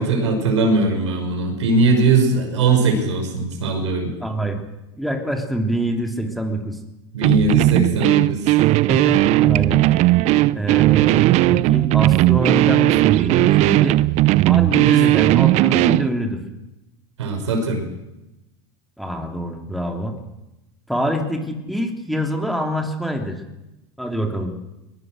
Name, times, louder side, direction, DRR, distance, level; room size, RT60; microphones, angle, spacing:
voice 1, 0.0-4.1 7.1-8.5 14.7-14.9 17.2-17.8, right 3 dB, 90° right, 4 dB, 5.8 m, -20 dB
voice 2, 4.2-4.6 5.0-6.8 8.9-9.8 10.5-14.0 14.5-16.4 19.0-20.1 20.9-23.4 24.0-24.5, right 1 dB, ahead, 3 dB, 3.2 m, -25 dB
sound 1, 7.2-16.1, right 17 dB, 50° right, 0.7 m, -16 dB
22.0 x 20.5 x 6.6 m, 0.96 s
hypercardioid pair, 105°, 15 cm